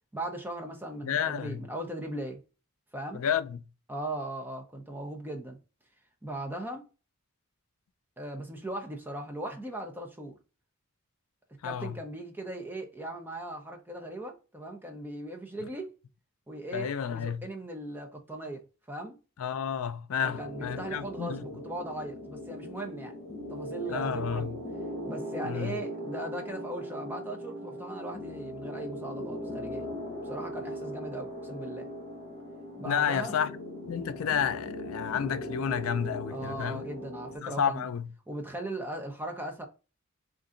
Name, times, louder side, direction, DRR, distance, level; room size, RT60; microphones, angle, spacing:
voice 1, 0.1-2.4 2.9-3.2 3.9-5.6 6.2-6.8 8.2-10.3 11.6-15.9 16.5-19.2 20.2-23.1 23.5-24.6 25.1-29.9 30.2-31.9 32.8-33.3 36.3-37.8 38.3-39.6, right 1 dB, 10° right, 0.6 m, -38 dB
voice 2, 1.0-1.6 3.1-3.6 11.6-12.0 16.7-17.4 19.4-21.4 23.9-24.6 25.4-25.8 32.9-33.5 33.9-36.8 37.4-38.1, left 8 dB, 70° left, 0.4 m, -31 dB
sound 1, 20.2-37.4, equal, 30° left, 1.1 m, -39 dB
3.7 x 2.5 x 3.7 m
head